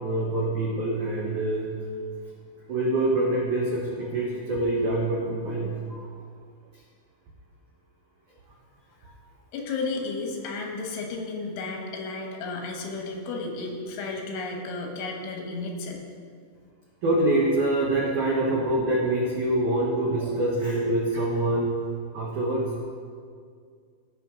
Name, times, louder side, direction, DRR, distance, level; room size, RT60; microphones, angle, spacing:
voice 1, 0.0-1.8 2.7-6.0 17.0-21.7 22.1-22.7, right 1 dB, 85° right, -4 dB, 1.7 m, -25 dB
voice 2, 9.5-16.0, left 3 dB, 85° left, 1 dB, 3.7 m, -33 dB
17.0 x 6.2 x 3.8 m, 2.1 s
omnidirectional pair, 5.4 m